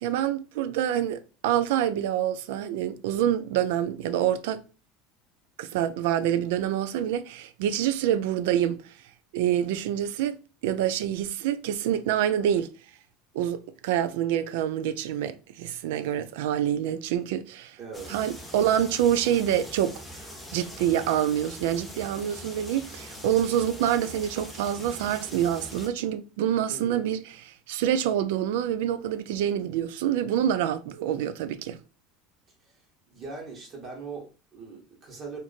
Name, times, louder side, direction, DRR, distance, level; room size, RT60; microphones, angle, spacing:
voice 1, 0.0-4.6 5.6-8.9 9.3-10.4 10.6-12.7 13.3-17.8 18.1-19.9 20.5-31.8, right 10 dB, 80° right, 0.4 m, -26 dB
voice 2, 17.8-18.3 26.7-27.1 32.6-32.8 33.1-35.4, right 4 dB, 35° right, 1.5 m, -41 dB
sound 1, 17.9-25.9, equal, ahead, 0.8 m, -43 dB
3.0 x 2.6 x 4.0 m
supercardioid pair, 125°, 0 cm